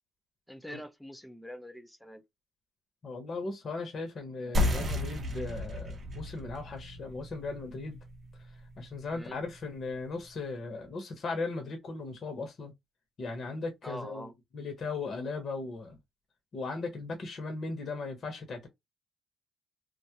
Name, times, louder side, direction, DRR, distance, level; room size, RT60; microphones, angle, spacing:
voice 1, 0.5-2.2 9.1-9.4 13.8-14.3, equal, 5° left, 0.5 m, -44 dB
voice 2, 3.0-8.0 8.8-12.7 13.2-16.0 16.5-18.7, left 3 dB, 50° left, 0.8 m, -37 dB
sound 1, 4.5-9.7, left 1 dB, 45° right, 0.6 m, -34 dB
2.2 x 2.1 x 2.8 m
cardioid pair, 90°, 0 cm